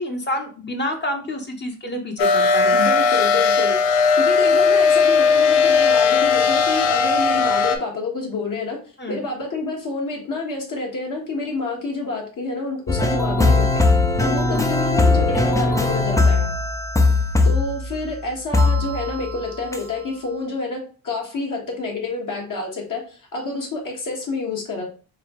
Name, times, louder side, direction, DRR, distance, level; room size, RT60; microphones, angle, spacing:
voice 1, 0.0-2.8 9.0-9.2 14.2-14.7, left 1 dB, 25° left, 3 dB, 1.0 m, -28 dB
sound 1, 2.2-7.8, left 5 dB, 90° left, 0.6 m, -17 dB
voice 2, 2.7-3.8 4.2-8.8 9.1-13.8 14.2-16.5 17.4-24.8, left 3 dB, 50° left, 0 dB, 1.5 m, -28 dB
sound 2, 12.9-18.1 18.5-19.4 19.7-19.8, left 3 dB, 10° left, 0.5 m, -19 dB
4.8 x 2.3 x 3.0 m, 0.39 s
cardioid pair, 80°, 41 cm